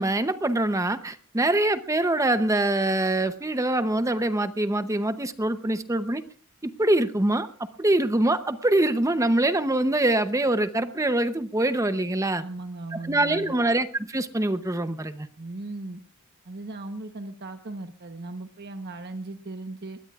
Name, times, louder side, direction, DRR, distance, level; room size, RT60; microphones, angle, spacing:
voice 1, 0.0-6.2 6.6-7.5 7.8-12.4 12.9-15.3, right 1 dB, 15° right, 10 dB, 0.7 m, -24 dB
voice 2, 12.3-13.5 15.4-16.0 16.4-20.0, right 2 dB, 50° right, 6 dB, 1.1 m, -37 dB
22.0 x 20.0 x 2.4 m, 0.39 s
head